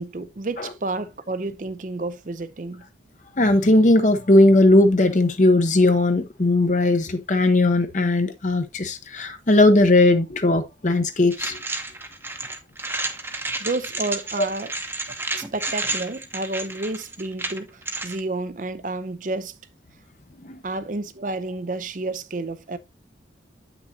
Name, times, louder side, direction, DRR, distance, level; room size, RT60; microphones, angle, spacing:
voice 1, 0.0-2.8 13.6-14.7 15.3-19.5 20.6-22.8, right 2 dB, 45° right, 0.6 m, -30 dB
voice 2, 3.4-11.6 20.4-20.6, left 2 dB, 40° left, 0.8 m, -18 dB
sound 1, 11.3-18.2, right 2 dB, 10° right, 0.8 m, -31 dB
8.7 x 6.0 x 2.8 m
head